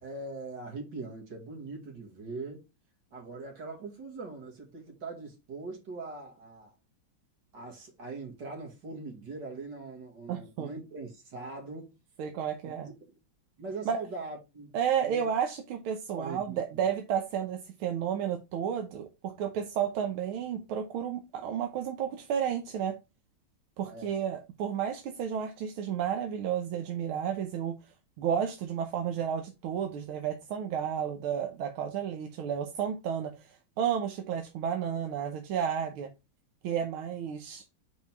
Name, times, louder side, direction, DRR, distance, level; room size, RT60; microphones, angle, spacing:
voice 1, 0.0-2.6 3.1-6.7 7.5-12.0 12.6-12.9 13.6-14.8 15.0-15.3 16.1-16.6 23.9-24.2, right 3 dB, 60° right, 2.5 m, -41 dB
voice 2, 10.3-10.7 12.2-12.9 13.8-14.0 14.7-23.0 23.8-27.7 28.2-36.1 36.6-37.7, right 8 dB, 85° right, 1.7 m, -32 dB
5.5 x 4.9 x 4.5 m
omnidirectional pair, 2.2 m